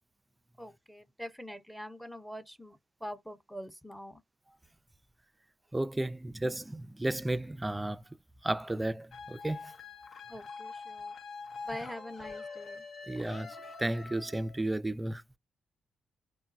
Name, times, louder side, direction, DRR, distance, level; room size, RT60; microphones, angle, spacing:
voice 1, 0.6-4.2 10.3-11.1 11.6-12.9, equal, ahead, 0.8 m, -44 dB
voice 2, 5.7-8.0 8.4-9.7 13.1-15.2, right 1 dB, 15° right, 0.4 m, -33 dB
sound 1, 9.1-14.6, left 4 dB, 65° left, 0.7 m, -45 dB
3.2 x 2.2 x 2.6 m
supercardioid pair, 50°, 0 cm